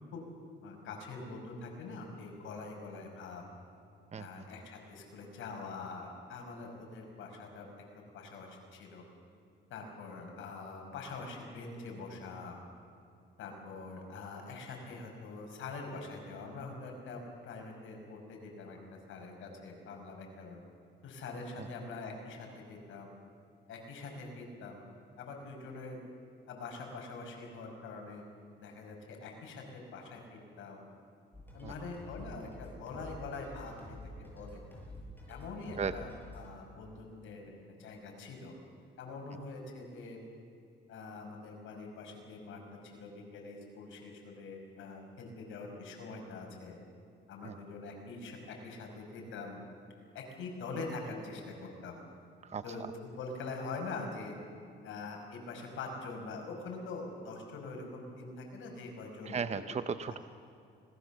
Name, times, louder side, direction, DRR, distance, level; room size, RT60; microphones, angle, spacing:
voice 1, 0.6-3.4 4.2-7.7 8.0-9.0 9.7-12.6 13.4-18.8 19.1-20.6 21.0-23.1 23.7-24.8 25.2-26.0 26.5-28.2 28.6-30.8 31.5-34.0 34.3-34.6 35.3-37.5 37.8-38.5 39.0-40.2 40.9-46.8 47.3-49.6 50.1-52.0 52.6-52.8 53.1-54.3 54.8-59.4 60.1-60.2, left 3 dB, 80° left, 2 dB, 5.5 m, -44 dB
sound 1, 31.3-36.5, left 1 dB, 10° left, 7.6 m, -49 dB
voice 2, 59.2-60.2, right 6 dB, 35° right, 11 dB, 0.7 m, -35 dB
26.0 x 20.0 x 7.2 m, 2.5 s
cardioid pair, 90°, 20 cm